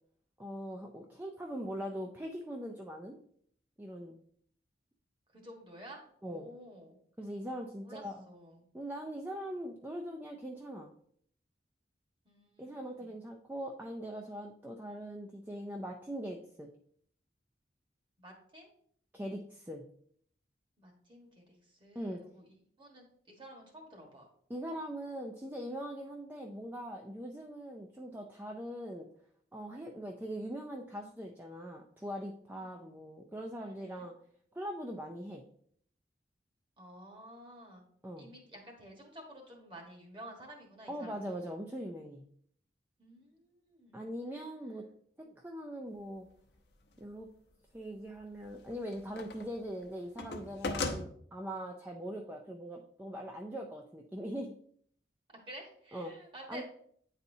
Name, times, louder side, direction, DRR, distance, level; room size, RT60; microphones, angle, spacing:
voice 1, 0.4-3.2 3.8-4.2 6.2-6.5 7.2-8.3 8.7-10.9 12.6-16.7 19.1-19.9 21.9-22.2 24.5-29.1 29.5-34.1 34.5-35.4 38.0-38.3 40.9-42.3 43.9-44.9 45.2-46.3 47.0-47.3 47.7-54.5 55.9-56.1 56.5-56.6, equal, 10° right, 2 dB, 0.4 m, -41 dB
voice 2, 5.3-7.0 7.8-8.6 12.2-13.1 18.2-18.7 20.8-24.3 32.6-32.9 33.6-34.1 36.8-37.8 38.2-41.5 43.0-44.0 55.5-56.6, right 1 dB, 30° right, 1 dB, 1.4 m, -52 dB
sound 1, 46.4-46.5 48.2-49.5 49.8-51.0, left 3 dB, 65° left, 0.8 m, -37 dB
9.2 x 4.1 x 2.7 m, 0.63 s
head